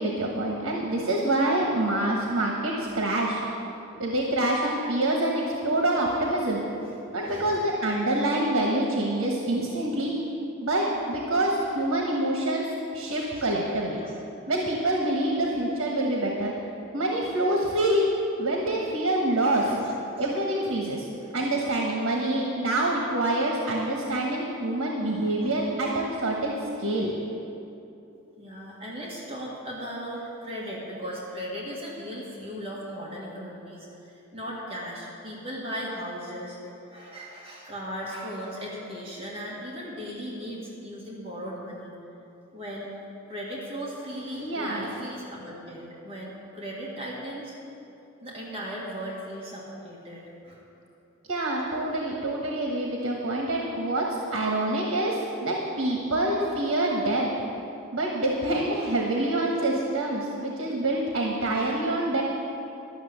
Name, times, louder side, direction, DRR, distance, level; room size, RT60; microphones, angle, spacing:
voice 1, 0.0-3.4 4.0-6.6 7.1-10.1 10.6-14.0 14.5-16.5 16.9-18.0 18.4-19.7 20.2-21.1 21.3-27.1 44.4-44.8 51.3-57.3 57.9-62.2, right 1 dB, 80° right, -1 dB, 1.3 m, -26 dB
voice 2, 7.2-7.6 13.4-13.5 14.0-14.1 19.4-20.3 21.2-21.4 25.4-25.6 28.4-41.9 42.5-42.9 43.3-47.6 48.2-50.6 61.5-61.9, equal, 25° right, -5 dB, 1.7 m, -37 dB
12.0 x 6.4 x 7.9 m, 2.8 s
head